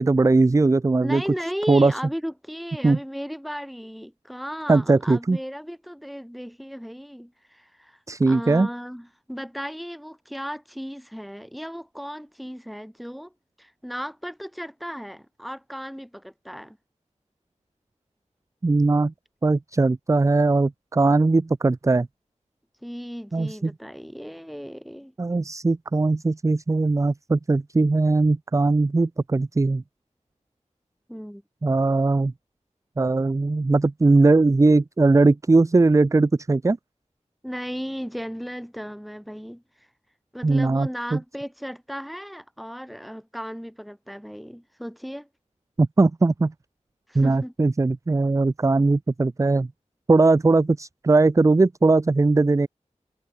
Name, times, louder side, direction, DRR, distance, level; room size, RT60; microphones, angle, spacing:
voice 1, 0.0-1.2 1.7-1.9 2.8-3.0 4.7-5.4 8.1-8.7 18.6-19.1 19.4-22.1 23.3-23.7 25.2-29.8 31.6-32.3 33.0-36.8 40.4-41.2 45.8-46.5 47.1-49.7 50.1-52.7, right 3 dB, 25° right, 0.4 m, -19 dB
voice 2, 1.0-13.3 13.6-16.8 22.8-25.1 31.1-31.4 37.4-39.6 40.3-45.3 47.1-47.5, equal, ahead, 5.8 m, -35 dB
wide cardioid pair, 60°, 13 cm